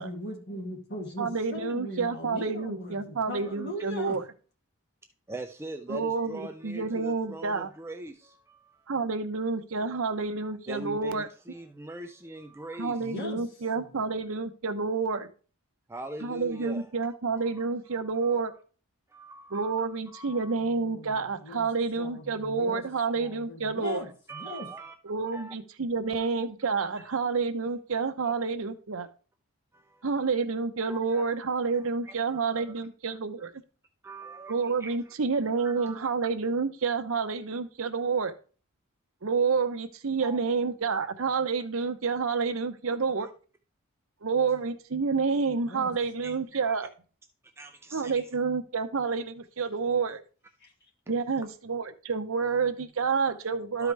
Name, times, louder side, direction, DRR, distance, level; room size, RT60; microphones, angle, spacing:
voice 1, 0.0-4.2 13.0-13.4 13.7-14.1 20.6-21.7 22.0-22.8 23.1-24.7 45.7-45.9 50.6-50.7, left 1 dB, 50° left, 2.3 m, -39 dB
voice 2, 1.2-4.2 5.9-7.7 8.9-11.3 12.8-15.3 16.2-18.5 19.5-24.0 25.0-29.1 30.0-33.5 34.5-38.3 39.2-43.3 44.2-46.9 47.9-50.2 51.1-53.9, right 4 dB, 70° right, 0.7 m, -29 dB
voice 3, 5.3-8.9 10.4-13.2 15.9-16.9 17.4-18.5 19.1-20.7 22.6-22.7 22.9-23.1 23.8-25.0 25.3-25.6 26.2-26.3 26.9-27.0 28.2-28.3 29.7-30.1 30.9-31.2 31.7-32.7 33.1-33.5 34.0-35.1 35.6-36.0 40.2-40.4 41.0-41.1 42.9-43.3 46.2-46.3 46.6-46.7 47.6-48.3 51.1-51.2 53.3-53.4 53.8-53.9, right 2 dB, 10° right, 0.4 m, -43 dB
12.5 x 4.9 x 3.3 m
head